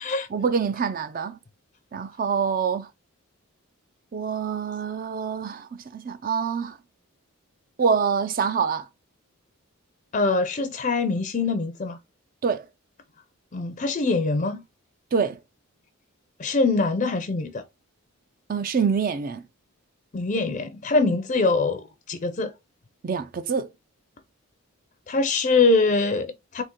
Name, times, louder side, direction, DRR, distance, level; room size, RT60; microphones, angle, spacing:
voice 1, 0.3-1.4 1.9-2.9 4.1-6.8 7.8-8.9 12.4-12.7 15.1-15.4 18.5-19.4 21.1-21.2 23.0-23.7, right 6 dB, 40° right, 0.4 m, -26 dB
voice 2, 10.1-12.0 13.5-14.6 16.4-17.6 20.1-22.5 25.1-26.6, left 3 dB, 35° left, 0.5 m, -23 dB
4.1 x 2.8 x 3.6 m
head